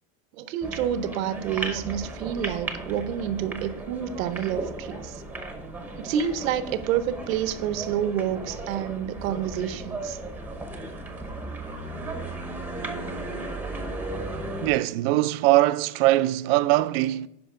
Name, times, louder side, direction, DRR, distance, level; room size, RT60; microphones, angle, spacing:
voice 1, 0.4-5.2 6.0-10.2, right 9 dB, 80° right, 0.9 m, -28 dB
sound 1, 0.6-14.7, right 2 dB, 5° right, 0.7 m, -35 dB
voice 2, 14.6-17.3, right 17 dB, 50° right, 0.4 m, -21 dB
11.5 x 5.1 x 3.7 m
supercardioid pair, 150°, 40 cm